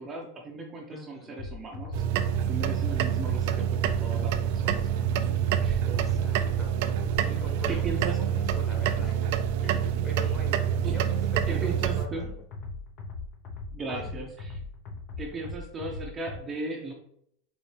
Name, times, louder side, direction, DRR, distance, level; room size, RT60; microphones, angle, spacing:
voice 1, 0.0-5.3 5.6-5.8 7.7-8.2 10.2-10.4 10.8-11.0 11.5-12.3 13.7-14.6 15.2-16.9, right 3 dB, 20° right, 0 dB, 0.6 m, -37 dB
voice 2, 0.9-1.4 5.8-6.8 7.1-9.2 9.6-12.4 13.9-14.3, equal, 20° left, 0 dB, 1.3 m, -43 dB
sound 1, 1.4-16.4, left 3 dB, 45° left, 0.8 m, -39 dB
sound 2, 1.9-12.1, right 10 dB, 65° right, 0.4 m, -27 dB
4.2 x 3.0 x 3.2 m, 0.70 s
supercardioid pair, 135°, 0 cm